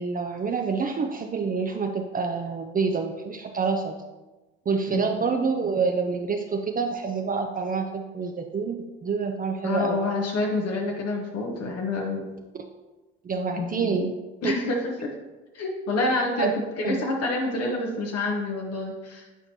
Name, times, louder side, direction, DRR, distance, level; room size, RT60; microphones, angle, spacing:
voice 1, 0.0-4.0 4.7-10.0 13.2-14.1 14.6-14.8 16.4-16.5 16.8-17.0, right 5 dB, 30° right, 4 dB, 0.6 m, -27 dB
voice 2, 9.6-12.3 13.6-14.0 14.4-15.1 15.5-16.5 16.8-19.3, left 2 dB, 55° left, 0 dB, 1.1 m, -28 dB
9.1 x 4.4 x 2.8 m, 1.2 s
hypercardioid pair, 60°, 29 cm